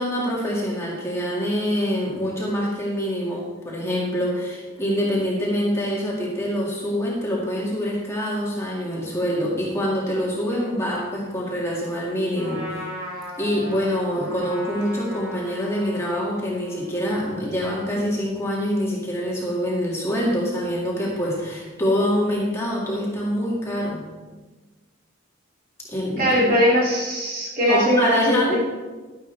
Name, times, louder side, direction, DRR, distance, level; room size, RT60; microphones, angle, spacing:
voice 1, 0.0-12.8 13.4-24.0 25.9-26.6 27.7-28.6, equal, 15° left, -5 dB, 2.1 m, -25 dB
Trumpet, 12.3-17.6, equal, 75° right, 3.9 m, -37 dB
voice 2, 26.2-28.6, equal, 45° right, -4 dB, 2.9 m, -20 dB
11.5 x 10.5 x 3.4 m, 1.3 s
head